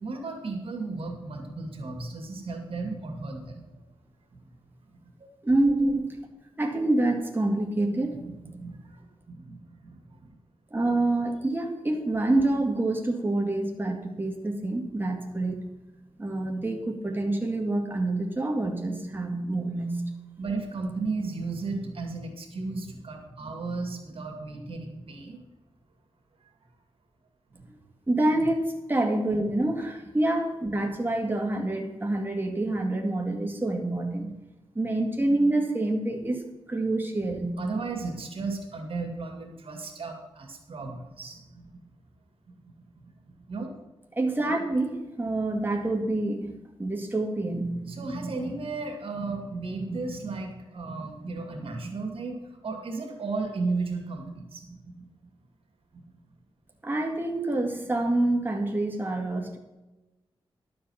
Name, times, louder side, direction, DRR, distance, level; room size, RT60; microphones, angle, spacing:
voice 1, 0.0-3.8 4.4-4.5 8.0-10.3 15.3-15.4 20.4-25.4 27.5-27.6 34.2-34.3 37.6-41.8 42.7-43.8 47.5-55.1, right 3 dB, 70° right, 3 dB, 2.4 m, -35 dB
voice 2, 5.4-6.2 6.6-8.2 10.7-15.6 16.2-20.0 28.1-34.3 34.8-37.6 44.2-46.5 46.8-47.7 56.8-59.6, right 2 dB, 20° right, 1 dB, 2.1 m, -27 dB
12.0 x 7.7 x 5.7 m, 1.1 s
wide cardioid pair, 75°, 10 cm